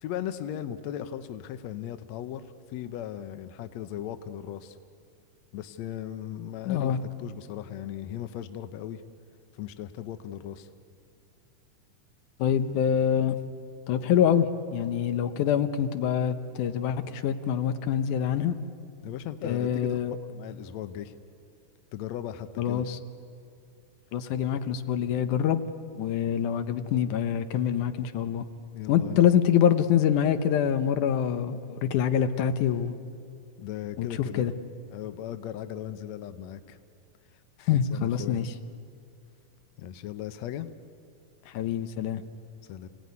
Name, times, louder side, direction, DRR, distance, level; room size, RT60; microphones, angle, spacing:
voice 1, 0.0-2.4 2.7-4.8 5.5-9.0 9.5-10.7 19.0-21.1 21.9-22.8 28.7-29.2 33.6-34.5 34.9-36.8 37.7-38.4 39.8-40.7 42.7-42.9, left 11 dB, 70° left, 10 dB, 2.0 m, -37 dB
voice 2, 6.7-7.0 12.4-13.4 13.9-14.5 14.7-18.6 19.4-20.2 22.6-23.0 24.1-25.6 26.0-28.4 28.9-32.9 34.0-34.1 34.4-34.5 37.7-38.5 41.5-42.2, left 9 dB, 85° left, 9 dB, 2.5 m, -25 dB
28.5 x 17.5 x 9.6 m, 2.5 s
omnidirectional pair, 3.5 m